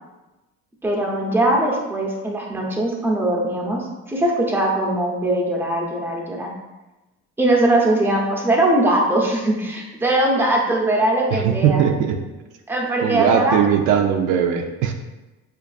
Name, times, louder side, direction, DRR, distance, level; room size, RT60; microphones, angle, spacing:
voice 1, 0.8-6.5 7.4-11.8 12.7-13.6, right 1 dB, 5° right, -2 dB, 0.6 m, -20 dB
voice 2, 11.3-12.2 13.0-14.9, right 8 dB, 75° right, 4 dB, 0.5 m, -19 dB
5.1 x 2.5 x 2.4 m, 1.1 s
cardioid pair, 110°, 31 cm